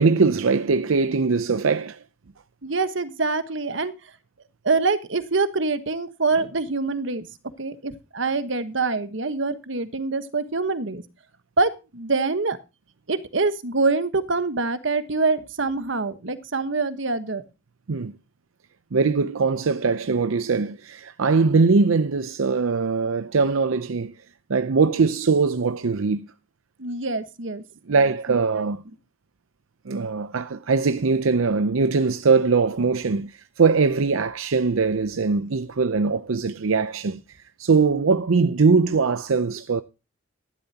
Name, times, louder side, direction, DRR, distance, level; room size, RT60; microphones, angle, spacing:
voice 1, 0.0-2.0 17.9-18.1 18.9-24.1 24.5-26.3 27.9-28.8 29.9-37.2 37.6-39.8, right 4 dB, 90° right, 0.6 m, -21 dB
voice 2, 2.6-3.9 4.6-7.3 7.6-11.0 11.6-12.6 13.1-17.4 26.8-27.6 28.3-28.7, right 3 dB, 65° right, 1.3 m, -25 dB
13.5 x 12.0 x 2.8 m
head